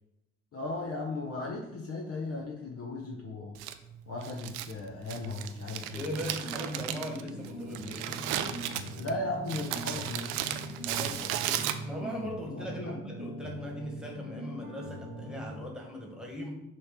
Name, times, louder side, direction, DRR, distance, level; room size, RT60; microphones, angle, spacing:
voice 1, 0.5-3.5 4.1-6.0 8.9-10.2 12.5-13.0, left 2 dB, 40° left, 0 dB, 1.1 m, -36 dB
Crumpling crinkling, 3.6-12.2, right 11 dB, 65° right, 0.5 m, -36 dB
voice 2, 5.8-8.1 10.8-16.5, equal, ahead, -1 dB, 1.9 m, -39 dB
sound 1, 6.1-15.5, left 1 dB, 70° left, 1.3 m, -42 dB
6.2 x 3.1 x 5.7 m, 0.89 s
figure-of-eight pair, 40°, 36 cm